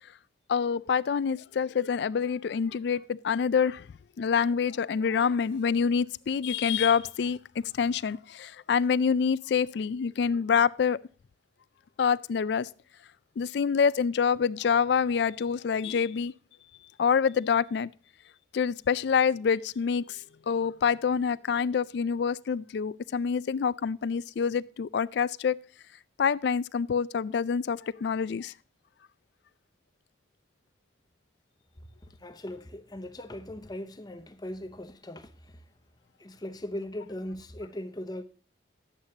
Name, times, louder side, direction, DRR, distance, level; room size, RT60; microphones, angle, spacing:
voice 1, 0.5-3.8 4.2-7.4 7.8-11.0 12.0-12.7 13.4-16.3 17.0-17.9 18.5-20.2 20.5-25.6 26.2-28.5, left 6 dB, 60° left, 0.3 m, -26 dB
voice 2, 32.2-35.3 36.2-38.2, left 1 dB, 20° left, 0.7 m, -39 dB
11.5 x 8.0 x 2.8 m
head